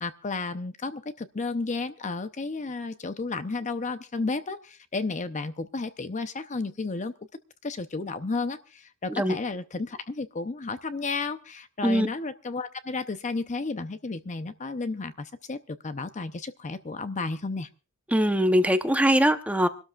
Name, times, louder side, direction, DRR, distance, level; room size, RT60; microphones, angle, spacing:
voice 1, 0.0-7.1 7.6-17.7, left 3 dB, 35° left, 11 dB, 0.6 m, -32 dB
voice 2, 18.1-19.7, equal, 5° right, 8 dB, 0.8 m, -22 dB
26.5 x 12.5 x 2.4 m, 0.33 s
head